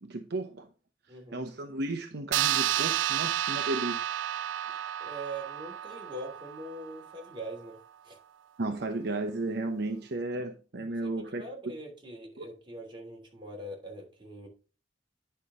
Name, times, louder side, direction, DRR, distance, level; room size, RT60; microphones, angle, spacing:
voice 1, 0.0-0.7 1.1-4.1 8.6-11.4 12.4-12.5, right 2 dB, 60° right, 5 dB, 0.8 m, -34 dB
voice 2, 1.1-1.4 5.0-7.8 8.0-8.2 11.0-14.5, right 1 dB, 30° right, 0 dB, 3.0 m, -42 dB
sound 1, 2.3-7.2, right 12 dB, 85° right, 0.3 m, -31 dB
9.7 x 5.6 x 3.7 m, 0.35 s
head